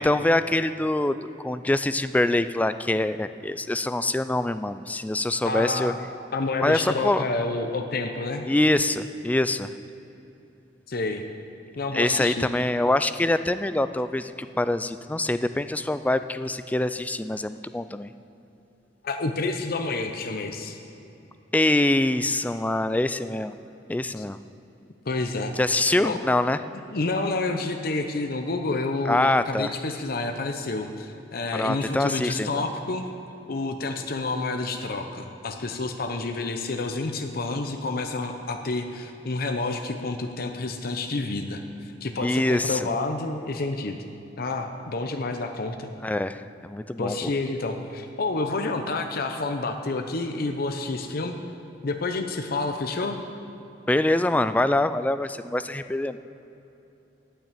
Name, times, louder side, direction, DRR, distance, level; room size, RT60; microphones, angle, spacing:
voice 1, 0.0-5.9 6.6-7.3 8.5-9.7 11.9-18.1 21.5-23.5 23.9-24.4 25.6-26.6 29.1-29.7 31.5-32.7 42.2-42.9 46.0-47.3 53.9-56.2, left 1 dB, 10° left, 12 dB, 0.3 m, -24 dB
voice 2, 5.4-6.0 6.3-8.5 10.9-11.2 11.8-12.5 19.0-20.8 24.2-24.3 25.1-25.5 26.0-26.2 26.9-33.1 33.5-44.0 44.4-45.9 47.0-51.4 51.8-53.2, left 3 dB, 55° left, 5 dB, 0.7 m, -29 dB
9.1 x 9.0 x 8.4 m, 2.9 s
head